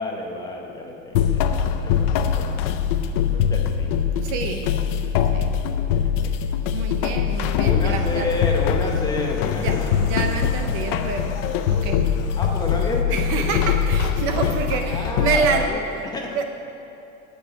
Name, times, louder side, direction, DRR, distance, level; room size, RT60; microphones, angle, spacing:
voice 1, 0.0-1.6 1.8-2.7 3.3-3.9 5.9-6.3 7.5-10.0 12.4-13.7 14.2-14.6 14.8-16.4, left 3 dB, 10° left, 0 dB, 0.8 m, -30 dB
sound 1, 1.1-15.7, left 8 dB, 40° left, 0.5 m, -23 dB
voice 2, 4.2-4.7 5.3-5.5 6.7-8.3 9.6-11.3 11.7-12.1 13.1-15.7 16.4-16.5, right 5 dB, 35° right, 5 dB, 0.6 m, -27 dB
sound 2, 7.9-13.0, left 7 dB, 65° left, 1.0 m, -36 dB
8.5 x 7.9 x 8.6 m, 2.7 s
supercardioid pair, 165°, 38 cm